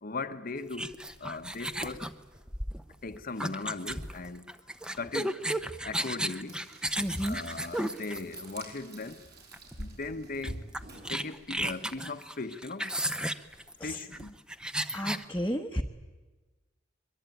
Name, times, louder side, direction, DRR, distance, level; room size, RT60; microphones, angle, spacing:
voice 1, 0.0-2.1 3.0-4.5 5.0-5.4 5.8-6.7 7.2-9.2 9.8-10.6 11.1-12.9 13.8-14.3, left 3 dB, 50° left, 1.1 m, -38 dB
sound 1, 0.7-8.7 9.5-9.7 10.0-10.1 10.4-15.2, right 1 dB, 5° right, 0.8 m, -34 dB
Frying (food), 6.5-11.8, right 1 dB, 55° right, 7.2 m, -47 dB
voice 2, 7.0-7.4 13.8-14.0 14.9-15.8, equal, 10° left, 1.2 m, -32 dB
23.5 x 23.0 x 9.3 m
head